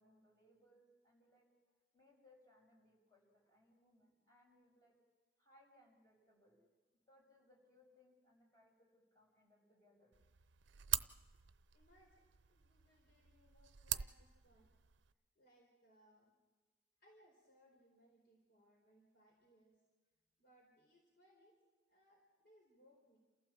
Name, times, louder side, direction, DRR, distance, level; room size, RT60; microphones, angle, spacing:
voice 1, 0.0-1.5 1.9-4.9 5.4-6.6 7.1-10.1, left 1 dB, 20° left, -2 dB, 7.0 m, -70 dB
sound 1, 10.1-15.1, right 13 dB, 75° right, 0.6 m, -44 dB
voice 2, 11.7-14.7 15.3-16.3 17.0-19.8 20.4-21.6 21.9-23.2, equal, 60° left, -1 dB, 4.2 m, -70 dB
29.0 x 15.0 x 7.4 m, 1.2 s
head